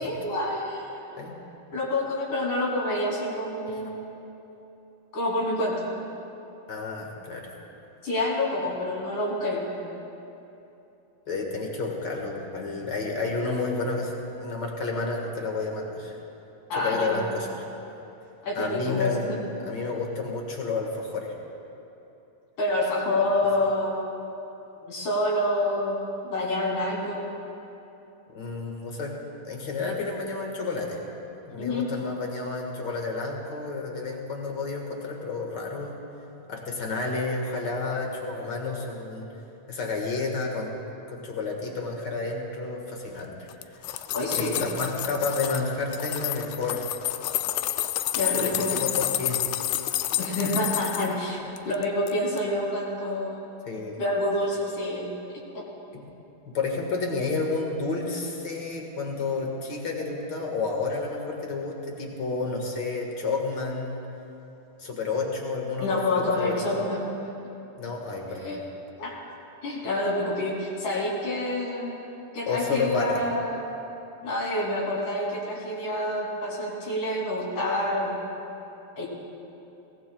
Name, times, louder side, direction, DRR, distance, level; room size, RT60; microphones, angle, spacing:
voice 1, 0.0-1.2 1.7-4.1 5.1-5.9 8.0-9.8 16.7-17.2 18.4-19.4 22.6-24.0 24.8-26.0 26.3-27.3 31.6-31.9 44.1-44.6 48.1-48.7 50.2-51.4 51.7-53.4 54.0-55.1 55.5-55.6 65.8-67.1 68.4-68.6 69.0-69.1 69.6-72.0 72.3-73.6 74.2-78.2 79.0-79.1, left 1 dB, 60° left, -4 dB, 4.3 m, -27 dB
voice 2, 6.7-7.5 11.3-16.2 16.7-17.6 18.5-19.3 19.6-21.3 28.3-29.1 29.4-31.0 31.5-36.0 36.5-39.3 39.7-40.7 41.1-43.3 44.3-46.9 48.4-49.4 53.6-54.0 55.9-56.0 56.5-64.0 64.8-66.6 67.8-68.6 72.5-73.2, left 3 dB, 45° left, 1 dB, 1.4 m, -30 dB
sound 1, 43.5-45.6 45.9-51.1 51.6-52.1 52.4-52.5, left 14 dB, 85° left, 1.8 m, -29 dB
22.5 x 18.5 x 2.3 m, 2.9 s
omnidirectional pair, 4.1 m